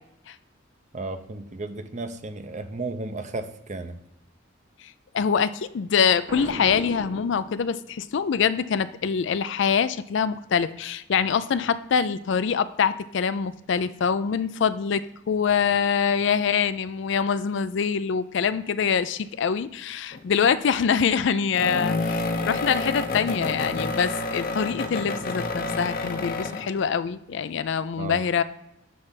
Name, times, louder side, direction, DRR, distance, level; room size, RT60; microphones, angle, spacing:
voice 1, 0.9-4.0 28.0-28.2, right 2 dB, 40° right, 8 dB, 0.7 m, -34 dB
voice 2, 5.1-28.4, left 6 dB, 70° left, 14 dB, 0.4 m, -24 dB
Boom, 6.3-8.1, right 1 dB, 65° right, 1.5 m, -38 dB
sound 1, 20.1-20.4 21.5-26.8, left 3 dB, 50° left, 0.8 m, -29 dB
9.4 x 3.4 x 5.7 m, 0.80 s
head